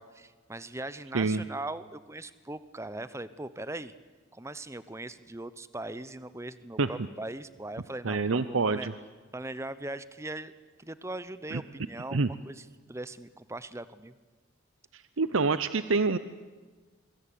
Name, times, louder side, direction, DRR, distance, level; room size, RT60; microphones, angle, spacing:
voice 1, 0.0-3.9 4.3-8.9 9.3-10.5 10.8-14.2, right 2 dB, 15° right, 15 dB, 0.8 m, -40 dB
voice 2, 8.0-8.9 11.5-11.6 12.1-12.3 14.9-16.2, right 4 dB, 80° right, 13 dB, 0.8 m, -26 dB
26.0 x 23.5 x 8.6 m, 1.4 s
head